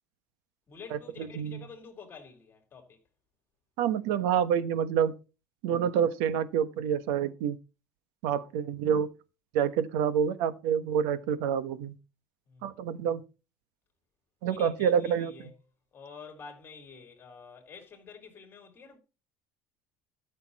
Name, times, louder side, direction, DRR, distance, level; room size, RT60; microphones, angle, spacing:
voice 1, 0.7-3.0 12.5-12.8 14.4-15.5 15.9-19.0, left 5 dB, 25° left, 3.5 m, -48 dB
voice 2, 3.8-5.1 5.6-7.6 8.2-9.1 9.5-11.9 12.6-13.2 14.4-15.3, right 8 dB, 80° right, 1.2 m, -27 dB
13.0 x 7.0 x 4.1 m
cardioid pair, 150°, 8 cm